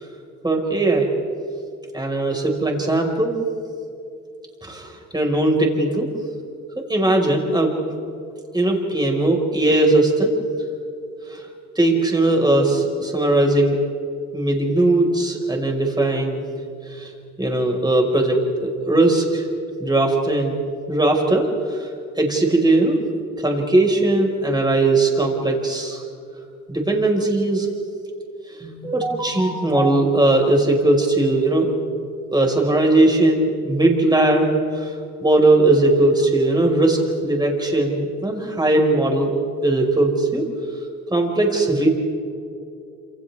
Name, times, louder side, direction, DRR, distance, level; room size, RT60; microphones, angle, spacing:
voice 1, 0.4-1.1 1.9-3.4 4.6-6.1 6.9-7.7 8.5-10.3 11.3-11.4 11.8-13.8 14.3-16.4 17.0-17.1 17.4-19.4 19.8-20.6 20.9-21.9 22.2-23.0 23.4-26.0 26.7-27.7 28.6-31.7 32.3-34.9 35.2-39.3 39.6-40.4 41.1-41.9, right 2 dB, 15° right, 0 dB, 5.3 m, -19 dB
28.5 x 27.5 x 3.6 m, 2.5 s
cardioid pair, 90°, 30 cm